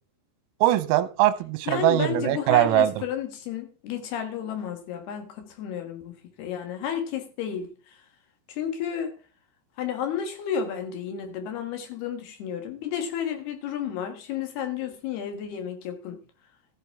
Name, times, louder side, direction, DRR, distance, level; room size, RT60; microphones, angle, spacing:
voice 1, 0.6-2.9, right 14 dB, 85° right, 13 dB, 3.5 m, -21 dB
voice 2, 1.7-8.0 8.5-9.1 9.8-16.2, left 8 dB, 65° left, 6 dB, 2.9 m, -32 dB
13.5 x 9.5 x 3.5 m, 0.38 s
omnidirectional pair, 6.0 m